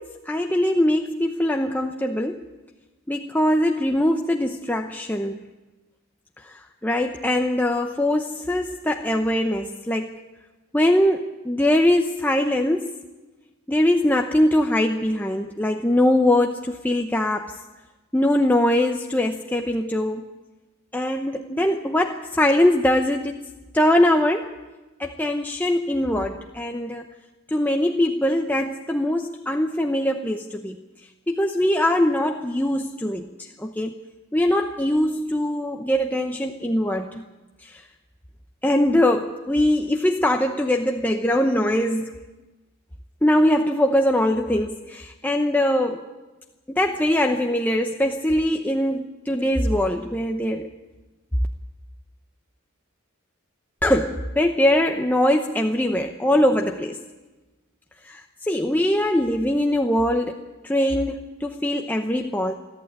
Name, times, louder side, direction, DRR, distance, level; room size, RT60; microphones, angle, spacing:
voice 1, 0.0-2.4 3.1-5.4 6.5-10.1 10.7-12.9 13.7-17.5 18.1-20.2 20.9-23.4 23.7-24.5 25.0-27.1 27.5-30.8 31.3-34.0 34.3-37.2 38.6-42.2 43.2-46.0 46.7-50.7 53.8-57.0 58.1-60.4 60.6-62.5, left 1 dB, 10° left, 3 dB, 0.8 m, -22 dB
29.0 x 11.5 x 8.8 m, 1.2 s
head